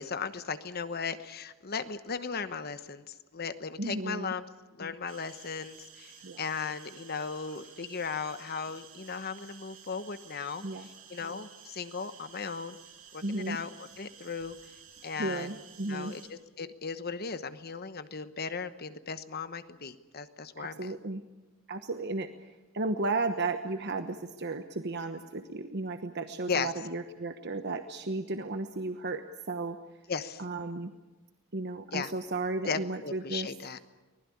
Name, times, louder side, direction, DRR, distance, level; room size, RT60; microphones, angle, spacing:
voice 1, 0.0-4.4 4.8-12.8 13.1-14.7 15.0-15.6 15.9-20.9 26.5-26.7 30.1-30.4 31.9-32.1 32.7-33.8, left 5 dB, 50° left, 12 dB, 1.1 m, -37 dB
voice 2, 3.8-4.3 6.2-6.4 10.6-10.9 13.2-13.6 15.2-16.1 20.6-21.2 21.7-22.5 22.7-29.8 30.4-30.9 31.5-33.5, right 3 dB, 55° right, 7 dB, 1.1 m, -34 dB
sound 1, 5.1-16.3, right 8 dB, 85° right, 6.3 m, -53 dB
24.5 x 20.0 x 8.6 m, 1.2 s
head